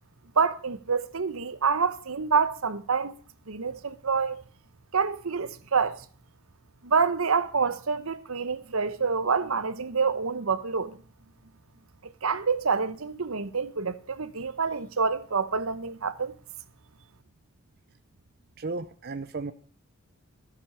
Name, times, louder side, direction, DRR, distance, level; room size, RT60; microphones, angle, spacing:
voice 1, 0.4-3.1 3.5-4.4 4.9-6.0 6.8-11.0 12.0-16.3, right 5 dB, 70° right, 0.9 m, -27 dB
voice 2, 18.6-19.5, right 3 dB, 45° right, 0.6 m, -34 dB
14.0 x 8.0 x 6.6 m
head